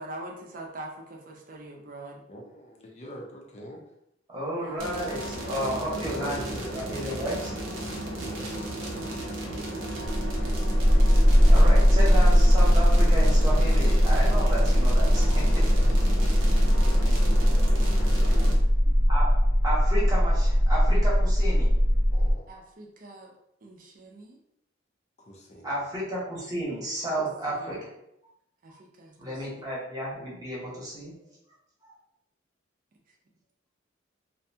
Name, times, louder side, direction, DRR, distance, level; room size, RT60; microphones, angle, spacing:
voice 1, 0.0-2.2 4.6-4.9 16.9-17.7 18.3-18.6 22.5-23.3 23.6-24.4 27.2-27.8 28.6-29.6 33.1-33.2, right 1 dB, 45° right, 0 dB, 0.5 m, -44 dB
voice 2, 2.3-3.8 5.9-6.8 8.3-8.9 22.1-22.5 25.2-25.7, equal, 35° left, 0 dB, 0.4 m, -43 dB
voice 3, 4.3-6.5 6.9-7.6 11.5-15.8 19.1-19.3 19.6-21.7 25.6-27.9 29.2-31.1, right 1 dB, 20° right, -6 dB, 0.9 m, -32 dB
sound 1, 4.8-18.5, right 1 dB, 90° right, 0.7 m, -34 dB
sound 2, 10.1-22.3, equal, 85° left, 0.9 m, -20 dB
2.6 x 2.2 x 2.7 m, 0.79 s
head